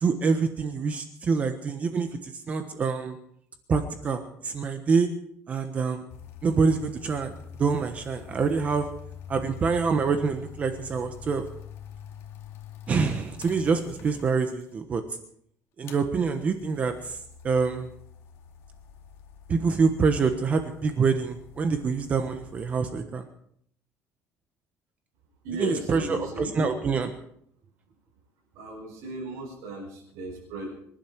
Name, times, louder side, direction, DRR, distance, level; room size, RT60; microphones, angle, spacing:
voice 1, 0.0-3.2 3.7-5.1 5.5-6.0 6.4-7.3 7.6-8.9 9.3-11.4 12.9-15.0 15.8-17.2 17.4-17.9 19.5-23.3 25.6-27.1, right 5 dB, 25° right, 7 dB, 1.1 m, -26 dB
sound 1, 6.1-14.7 15.8-22.9, left 8 dB, 55° left, 2.3 m, -46 dB
voice 2, 25.4-26.7 28.5-30.7, right 1 dB, 75° right, -6 dB, 6.7 m, -35 dB
25.5 x 11.5 x 4.7 m, 0.67 s
cardioid pair, 165°, 5 cm